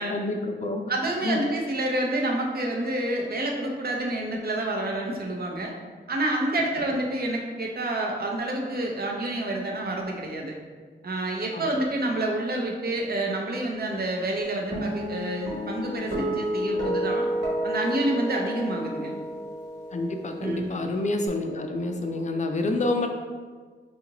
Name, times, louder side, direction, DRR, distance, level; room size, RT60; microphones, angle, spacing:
voice 1, 0.1-0.9 1.2-1.4 11.5-11.7 19.9-23.1, left 2 dB, 40° left, 4 dB, 0.4 m, -28 dB
voice 2, 0.9-5.7 6.1-10.6 11.0-17.3 17.6-19.2 20.4-20.7, right 1 dB, 55° right, 0 dB, 0.6 m, -28 dB
Guitar, 14.7-21.3, equal, 70° right, 1.2 m, -31 dB
3.8 x 2.4 x 2.9 m, 1.5 s
cardioid pair, 60°, 19 cm